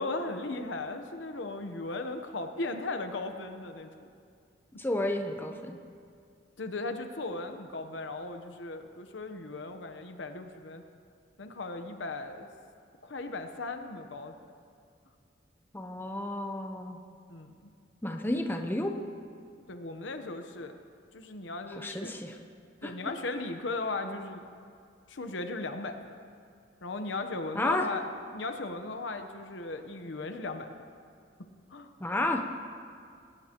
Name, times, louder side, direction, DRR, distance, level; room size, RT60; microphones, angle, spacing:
voice 1, 0.0-4.1 6.6-10.8 11.4-12.5 13.0-14.3 17.3-17.7 19.7-20.8 21.1-22.1 22.8-24.4 25.1-26.2 26.8-28.0 28.3-30.7 31.7-31.9, left 2 dB, 75° left, 7 dB, 1.0 m, -37 dB
voice 2, 4.8-5.8 15.7-17.0 18.0-19.0 21.8-22.4 22.8-22.9 27.5-27.9 32.0-32.4, left 1 dB, 10° left, 4 dB, 0.8 m, -31 dB
19.0 x 18.0 x 3.0 m, 2.3 s
head